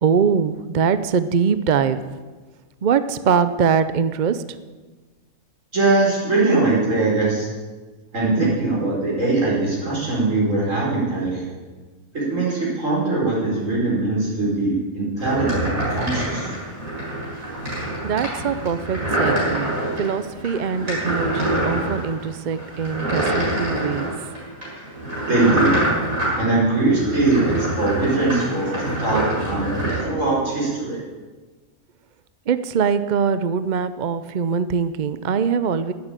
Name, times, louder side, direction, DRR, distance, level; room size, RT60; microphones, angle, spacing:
voice 1, 0.0-2.0 2.8-4.4 18.0-24.1 32.5-35.9, right 6 dB, 50° right, 13 dB, 0.5 m, -22 dB
voice 2, 5.7-7.5 8.1-11.5 12.1-16.5 25.3-25.7 26.4-31.0, right 2 dB, 65° right, -5 dB, 5.2 m, -21 dB
sound 1, 15.2-30.0, right 1 dB, 85° right, 6.4 m, -25 dB
11.0 x 9.7 x 8.9 m, 1.3 s
omnidirectional pair, 1.4 m